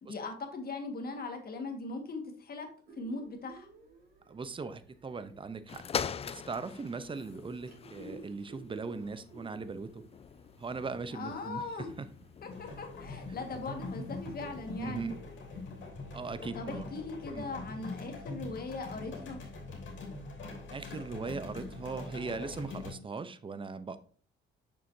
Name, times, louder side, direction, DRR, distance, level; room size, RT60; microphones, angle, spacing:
voice 1, 0.0-2.7 3.0-3.7 11.1-11.9 12.4-15.1 16.5-19.4, left 3 dB, 50° left, 4 dB, 1.7 m, -40 dB
sound 1, 2.8-18.2, right 2 dB, 50° right, 3.5 m, -57 dB
voice 2, 4.3-10.0 10.6-11.6 12.0-12.1 14.7-15.2 16.1-16.9 17.3-17.5 20.7-24.0, right 4 dB, 25° right, 13 dB, 0.7 m, -39 dB
sound 2, 5.7-15.2 15.9-16.0, left 7 dB, 30° left, 0.3 m, -44 dB
sound 3, 12.5-22.9, left 3 dB, 70° left, 2.8 m, -43 dB
6.9 x 6.3 x 2.7 m, 0.43 s
cardioid pair, 90°, 20 cm